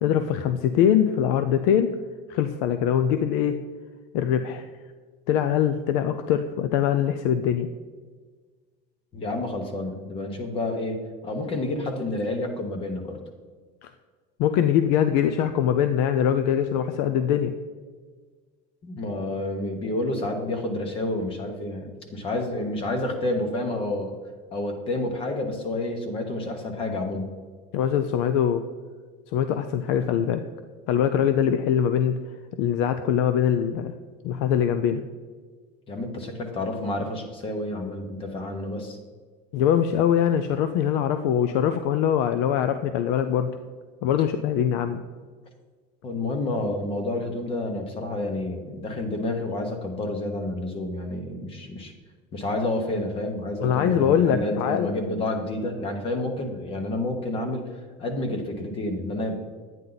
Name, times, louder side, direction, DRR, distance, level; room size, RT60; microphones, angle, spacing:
voice 1, 0.0-1.9 2.3-3.6 4.1-4.7 5.3-7.7 13.8-13.9 14.4-17.5 27.7-28.6 29.3-30.4 30.9-32.2 32.6-33.9 34.2-35.0 39.5-43.5 44.0-45.0 53.6-54.9, left 9 dB, 60° left, 9 dB, 0.5 m, -22 dB
voice 2, 9.1-11.0 11.2-13.2 18.8-24.2 24.5-27.3 35.9-39.0 46.0-51.9 52.3-57.7 58.0-59.4, left 2 dB, 25° left, 5 dB, 1.2 m, -29 dB
11.0 x 9.2 x 4.0 m, 1.5 s
cardioid pair, 175°, 21 cm